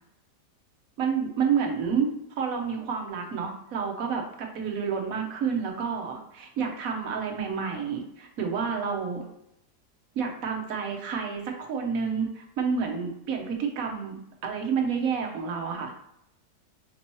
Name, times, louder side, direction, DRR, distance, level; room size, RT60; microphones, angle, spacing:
voice 1, 1.0-2.1 2.4-9.3 10.1-15.9, right 6 dB, 60° right, 2 dB, 1.1 m, -29 dB
5.3 x 2.8 x 3.0 m, 0.79 s
omnidirectional pair, 1.8 m